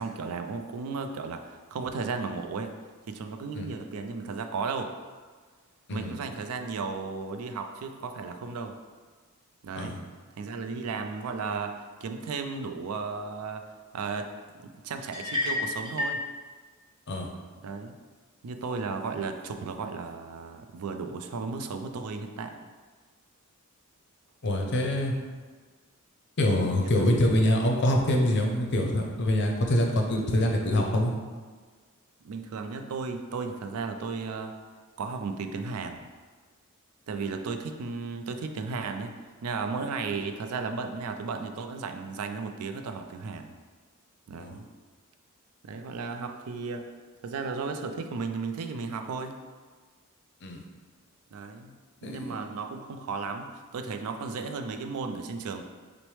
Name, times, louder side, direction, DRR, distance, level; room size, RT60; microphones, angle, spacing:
voice 1, 0.0-2.7 3.1-4.9 5.9-8.8 9.6-10.0 10.4-13.7 13.9-14.3 14.6-16.2 17.6-17.9 18.4-22.6 24.7-25.1 26.8-27.1 32.2-34.6 35.0-36.0 37.1-39.1 39.4-43.5 44.3-44.6 45.6-46.9 47.2-49.4 51.3-51.7 52.0-55.6, right 4 dB, 85° right, 6 dB, 0.4 m, -34 dB
sound 1, 15.1-16.2, left 2 dB, 20° right, 0.8 m, -29 dB
voice 2, 24.4-25.1 26.4-31.1 44.4-44.6 50.4-50.6 52.0-52.4, left 1 dB, 55° left, 1 dB, 0.6 m, -25 dB
6.0 x 2.1 x 3.2 m, 1.5 s
head